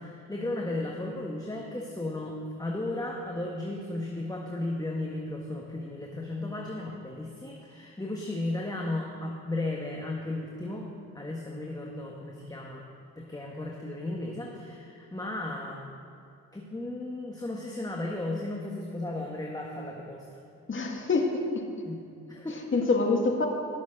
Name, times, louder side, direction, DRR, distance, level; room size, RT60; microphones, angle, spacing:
voice 1, 0.0-12.8 13.2-15.9 16.5-20.4 21.8-22.0 22.3-22.6, left 2 dB, 10° left, -1 dB, 1.5 m, -35 dB
voice 2, 20.7-21.6 22.7-23.5, left 3 dB, 30° left, 2 dB, 1.9 m, -26 dB
18.0 x 7.1 x 3.8 m, 2.5 s
supercardioid pair, 65°, 37 cm